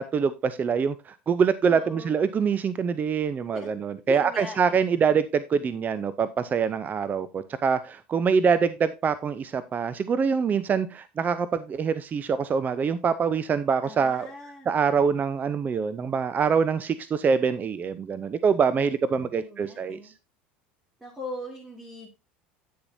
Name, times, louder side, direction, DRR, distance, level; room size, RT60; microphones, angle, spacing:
voice 1, 0.0-14.3 14.7-20.1, right 6 dB, 30° right, 0.5 m, -25 dB
voice 2, 1.7-2.1 3.5-3.7 4.1-4.8 13.8-14.7 19.3-20.1 21.0-22.1, left 1 dB, 10° right, 2.2 m, -39 dB
9.6 x 6.9 x 2.7 m
hypercardioid pair, 85°, 6 cm